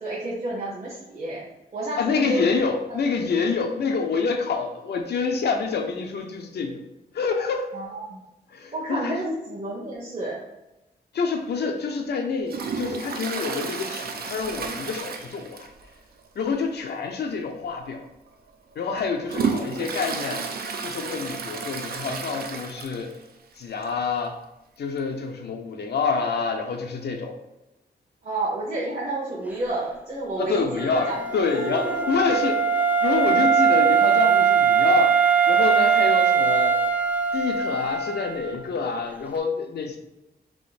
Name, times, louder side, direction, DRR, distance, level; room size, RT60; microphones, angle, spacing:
voice 1, 0.0-1.4 1.7-2.4 3.9-4.0 7.7-8.2 8.7-10.4 19.3-19.9 28.2-32.1 32.8-32.9, right 2 dB, 45° right, -6 dB, 1.0 m, -31 dB
voice 2, 2.0-6.8 7.1-7.7 8.5-9.2 11.1-15.7 16.4-18.0 18.8-20.5 20.8-23.1 23.6-24.4 24.8-27.4 30.4-32.7 33.0-35.2 35.5-36.8 37.3-40.0, left 5 dB, 80° left, 4 dB, 0.6 m, -27 dB
Toilet flush, 12.5-15.9 16.2-16.3 16.7-16.8 17.7-17.8 18.3-23.2 23.6-23.7 23.8-23.9 25.0-25.1, right 5 dB, 65° right, 0.5 m, -32 dB
Wind instrument woodwind instrument, 30.7-38.5, right 6 dB, 10° right, 0.4 m, -21 dB
3.6 x 3.0 x 4.2 m, 0.98 s
wide cardioid pair, 135°, 17 cm